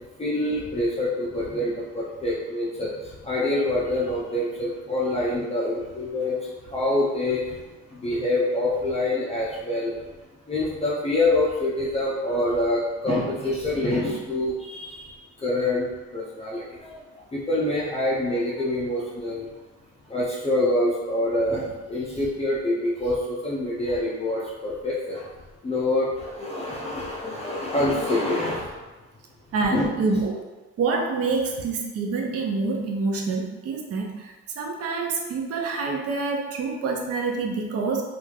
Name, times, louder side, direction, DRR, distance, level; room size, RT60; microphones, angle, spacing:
voice 1, 0.2-7.5 7.9-10.0 10.5-15.1 15.4-17.0 17.3-19.5 20.1-25.3 25.6-28.7 29.7-29.9, left 1 dB, 20° left, -7 dB, 0.5 m, -26 dB
voice 2, 29.5-30.4 30.8-38.0, right 4 dB, 55° right, 1 dB, 0.5 m, -27 dB
3.0 x 2.5 x 2.3 m, 1.2 s
cardioid pair, 90°, 30 cm